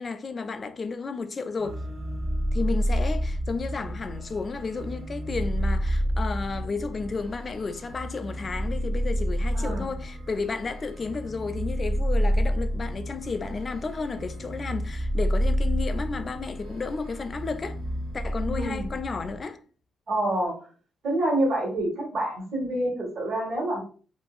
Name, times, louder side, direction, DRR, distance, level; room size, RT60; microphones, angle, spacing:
voice 1, 0.0-1.8 2.5-17.8 18.1-19.6, left 4 dB, 35° left, 0.3 m, -32 dB
sound 1, 1.6-19.4, equal, 45° right, 0.8 m, -29 dB
voice 2, 9.5-9.8 18.5-18.9 20.1-20.6 21.0-23.8, right 1 dB, 65° right, 1.2 m, -27 dB
2.8 x 2.6 x 2.3 m
cardioid pair, 90°, 0 cm